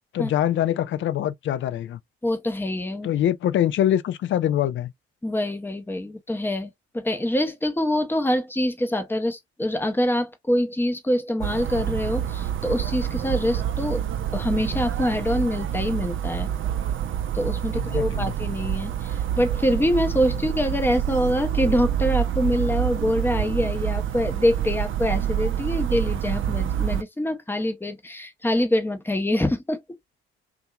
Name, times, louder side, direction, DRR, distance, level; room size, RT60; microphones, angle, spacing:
voice 1, 0.1-2.0 3.0-4.9 17.7-18.3, left 11 dB, 40° left, 0.4 m, -24 dB
voice 2, 2.2-3.1 5.2-16.5 17.3-29.8, left 1 dB, 5° left, 0.7 m, -25 dB
sound 1, 11.4-27.0, right 10 dB, 40° right, 0.5 m, -27 dB
2.7 x 2.3 x 2.3 m
hypercardioid pair, 50°, 33 cm